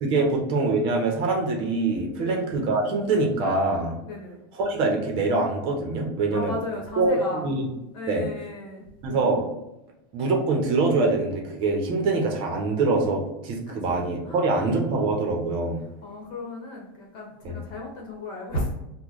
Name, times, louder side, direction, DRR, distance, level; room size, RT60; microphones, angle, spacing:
voice 1, 0.0-3.9 4.5-6.5 7.0-7.7 8.1-8.3 9.0-9.5 10.1-15.8 17.4-17.6, right 3 dB, 45° right, 1 dB, 0.8 m, -24 dB
voice 2, 2.2-2.5 4.0-4.4 6.3-7.5 7.9-8.8 13.7-14.5 14.8-14.9 15.8-18.7, left 1 dB, 40° left, -2 dB, 1.2 m, -35 dB
3.0 x 2.2 x 3.8 m, 0.92 s
supercardioid pair, 145°, 12 cm